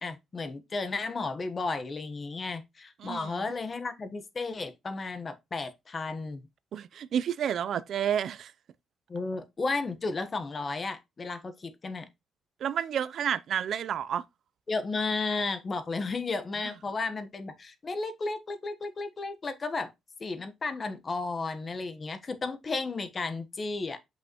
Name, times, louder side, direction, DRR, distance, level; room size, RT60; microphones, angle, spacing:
voice 1, 0.0-6.5 9.1-12.1 14.7-19.9 20.2-24.0, left 3 dB, 35° left, 1.2 m, -33 dB
voice 2, 3.0-3.5 6.7-8.5 12.6-14.2 16.6-16.7, right 9 dB, 65° right, 0.6 m, -30 dB
7.6 x 5.6 x 3.0 m
cardioid pair, 90°, 0 cm